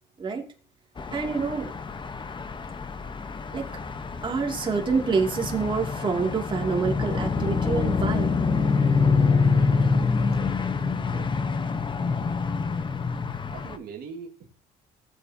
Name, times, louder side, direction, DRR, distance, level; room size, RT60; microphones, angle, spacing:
sound 1, 1.0-13.8, left 4 dB, 30° left, 1.0 m, -26 dB
voice 1, 1.1-1.7 3.5-3.7 4.2-8.3, right 5 dB, 30° right, 1 dB, 2.5 m, -27 dB
voice 2, 9.6-9.9 10.3-11.3 12.8-12.9 13.5-14.5, right 6 dB, 65° right, 1 dB, 1.9 m, -44 dB
17.0 x 8.0 x 2.8 m, 0.40 s
cardioid pair, 110°, 17 cm